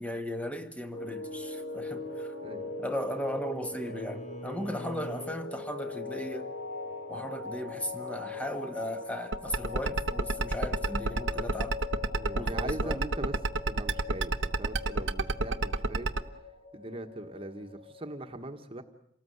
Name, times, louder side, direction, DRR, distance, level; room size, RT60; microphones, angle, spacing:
voice 1, 0.0-2.3 2.8-6.5 7.1-11.8 12.3-13.0, equal, 5° left, 1.5 m, -37 dB
sound 1, 0.9-18.3, left 3 dB, 70° left, 2.7 m, -41 dB
Bowed string instrument, 2.1-5.5, left 1 dB, 35° left, 2.1 m, -46 dB
sound 2, 9.3-16.2, right 3 dB, 70° right, 1.0 m, -28 dB
voice 2, 12.1-13.3 13.7-16.1 16.7-18.8, right 1 dB, 30° right, 1.5 m, -40 dB
28.0 x 18.5 x 8.0 m
head